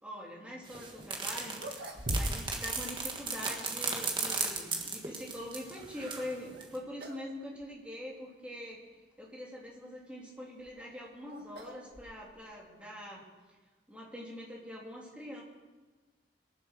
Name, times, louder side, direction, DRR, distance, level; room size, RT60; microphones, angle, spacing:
voice 1, 0.0-1.8 2.1-8.8 9.2-13.2 13.9-15.4, left 1 dB, 5° right, -3 dB, 3.0 m, -43 dB
sound 1, 0.7-6.3 6.6-6.8, right 4 dB, 25° right, 1.7 m, -36 dB
sound 2, 1.0-1.1 1.5-2.6 2.9-3.0 3.9-4.6 6.4-6.7 7.0-7.3 7.6-7.7 8.5-8.6 10.4-12.5, equal, 65° right, 1.7 m, -40 dB
22.5 x 7.5 x 6.5 m, 1.3 s
head